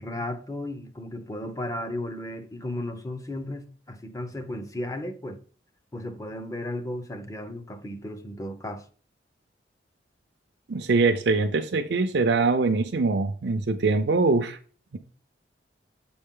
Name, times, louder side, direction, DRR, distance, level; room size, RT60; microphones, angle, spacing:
voice 1, 0.0-5.4 5.9-8.8, left 1 dB, 20° left, 0.6 m, -34 dB
voice 2, 10.7-14.6, right 3 dB, 70° right, 0.5 m, -23 dB
7.3 x 4.3 x 3.7 m
head